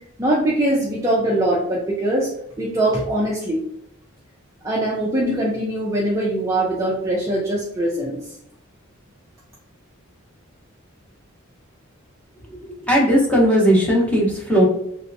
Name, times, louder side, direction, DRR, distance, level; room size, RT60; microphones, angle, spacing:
voice 1, 0.2-2.3 2.6-3.6 4.6-8.2, right 1 dB, 15° right, -4 dB, 0.5 m, -22 dB
voice 2, 12.5-14.6, equal, 5° left, -4 dB, 1.0 m, -17 dB
3.2 x 2.8 x 2.6 m, 0.75 s
head